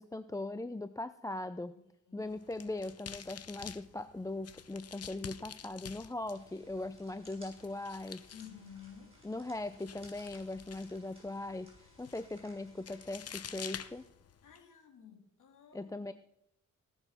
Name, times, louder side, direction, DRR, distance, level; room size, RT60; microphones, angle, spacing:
voice 1, 0.0-1.7 2.1-8.2 9.2-14.0 15.7-16.1, left 2 dB, 10° left, 11 dB, 0.5 m, -40 dB
voice 2, 1.7-2.3 6.2-6.3 8.3-9.1 14.4-16.1, left 8 dB, 80° left, 4 dB, 2.5 m, -53 dB
sound 1, 2.2-14.6, left 8 dB, 50° left, 0.8 m, -50 dB
sound 2, 6.2-14.1, right 1 dB, 20° right, 6.8 m, -62 dB
18.5 x 7.0 x 5.8 m, 0.78 s
cardioid pair, 90°, 31 cm